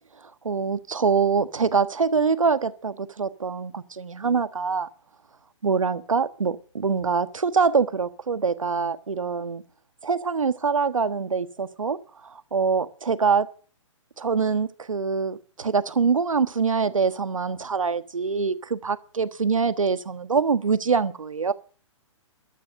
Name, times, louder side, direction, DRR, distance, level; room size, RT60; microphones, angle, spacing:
voice 1, 0.4-4.9 5.6-9.6 10.0-12.0 12.2-13.5 14.2-21.5, right 5 dB, 90° right, 1.4 m, -24 dB
14.0 x 12.5 x 7.6 m
hypercardioid pair, 130°, 16 cm